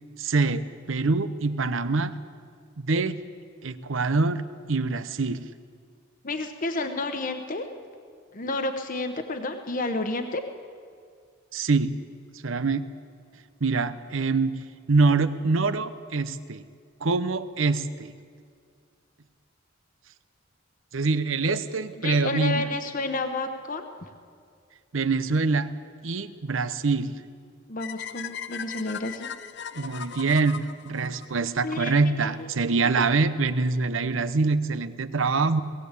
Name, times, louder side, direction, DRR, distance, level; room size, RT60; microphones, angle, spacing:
voice 1, 0.2-2.1 2.8-3.2 3.6-4.4 4.7-5.4 11.5-11.9 12.4-12.9 13.6-14.6 14.9-16.6 17.0-18.1 20.9-22.7 24.9-25.7 26.0-27.1 29.7-35.6, right 3 dB, 75° right, 13 dB, 0.8 m, -25 dB
voice 2, 6.2-7.7 8.3-10.4 22.0-24.1 27.7-29.3 31.6-32.5, left 2 dB, 45° left, 6 dB, 1.0 m, -31 dB
sound 1, 27.8-31.9, left 8 dB, 60° left, 0.6 m, -38 dB
19.5 x 16.5 x 8.3 m, 2.1 s
head